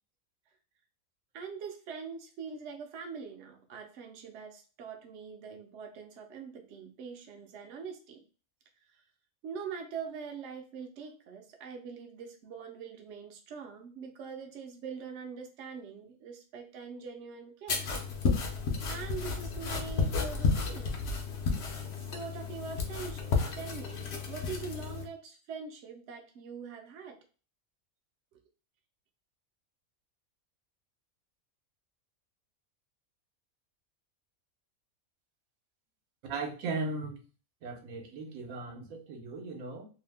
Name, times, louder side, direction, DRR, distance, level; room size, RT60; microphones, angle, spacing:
voice 1, 1.3-8.2 8.9-9.0 9.4-17.9 18.9-21.0 21.9-27.2 28.3-28.4, right 6 dB, 65° right, 0.8 m, -43 dB
sound 1, 17.7-25.0, left 4 dB, 60° left, 0.8 m, -32 dB
voice 2, 36.2-37.2 37.6-39.8, right 3 dB, 80° right, 1.1 m, -37 dB
2.8 x 2.0 x 3.3 m
omnidirectional pair, 1.4 m